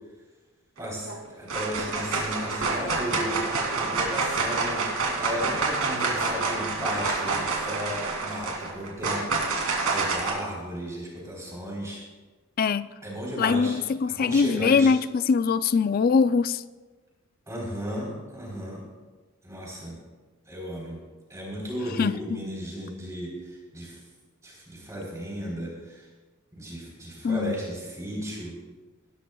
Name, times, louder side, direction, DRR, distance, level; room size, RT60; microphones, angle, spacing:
voice 1, 0.8-3.5 3.7-4.9 5.2-9.3 9.9-12.0 13.0-13.8 14.1-14.9 17.5-18.8 19.4-20.0 20.5-21.0 21.3-24.0 24.4-26.1 26.6-28.6, equal, 15° right, 3.5 m, -35 dB
sound 1, 0.8-1.2 1.5-10.3, right 3 dB, 90° right, 2.6 m, -28 dB
voice 2, 12.6-12.9 13.4-16.6 22.0-22.1 27.2-27.5, left 5 dB, 45° left, 0.3 m, -22 dB
18.0 x 11.5 x 2.3 m
head